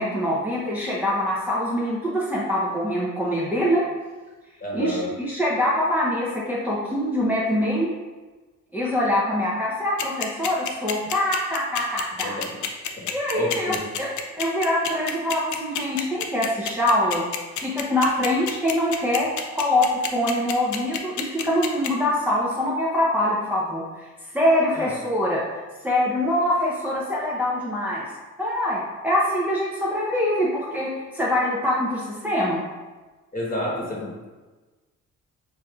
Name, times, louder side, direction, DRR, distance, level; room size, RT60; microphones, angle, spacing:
voice 1, 0.0-3.8 4.7-7.9 8.7-12.4 13.1-14.1 14.4-17.2 17.6-24.1 24.3-25.4 25.8-28.1 28.4-32.6, left 1 dB, 5° right, -6 dB, 0.6 m, -24 dB
voice 2, 4.6-5.1 12.2-12.5 13.0-13.8 24.7-24.9 33.3-34.2, left 1 dB, 30° left, -4 dB, 1.1 m, -30 dB
sound 1, 10.0-21.9, left 9 dB, 70° left, 0.5 m, -28 dB
5.1 x 2.6 x 2.3 m, 1.3 s
cardioid pair, 90°, 30 cm